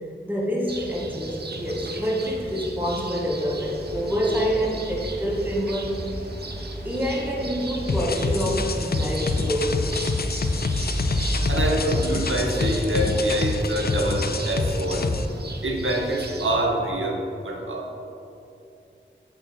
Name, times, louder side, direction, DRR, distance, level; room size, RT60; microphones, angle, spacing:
voice 1, 0.2-6.0 6.8-9.9, equal, 10° right, -4 dB, 1.3 m, -26 dB
sound 1, 0.7-16.7, right 2 dB, 55° right, 0.6 m, -37 dB
sound 2, 3.6-13.3, equal, 85° left, 1.6 m, -34 dB
sound 3, 7.9-15.3, left 3 dB, 50° left, 0.4 m, -26 dB
voice 2, 11.5-15.1 15.6-17.9, right 1 dB, 85° right, 1 dB, 0.9 m, -25 dB
7.9 x 4.4 x 4.1 m, 2.7 s
wide cardioid pair, 45°, 20 cm